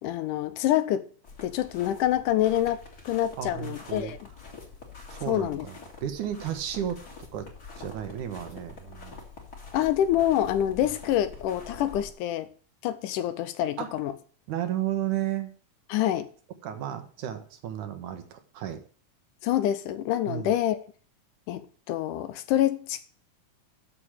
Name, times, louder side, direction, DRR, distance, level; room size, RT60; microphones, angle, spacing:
voice 1, 0.0-1.1 1.4-4.2 5.3-5.7 9.7-12.5 12.8-14.1 15.9-16.3 19.4-20.8 21.5-23.1, left 12 dB, 80° left, 2.1 m, -26 dB
sound 1, 1.2-12.1, left 4 dB, 30° left, 2.3 m, -45 dB
voice 2, 3.4-4.2 5.1-7.0 7.3-7.5 7.8-9.2 13.8-13.9 14.5-15.5 16.6-18.8 20.3-20.5, right 11 dB, 70° right, 2.4 m, -33 dB
6.8 x 6.6 x 7.4 m
omnidirectional pair, 3.8 m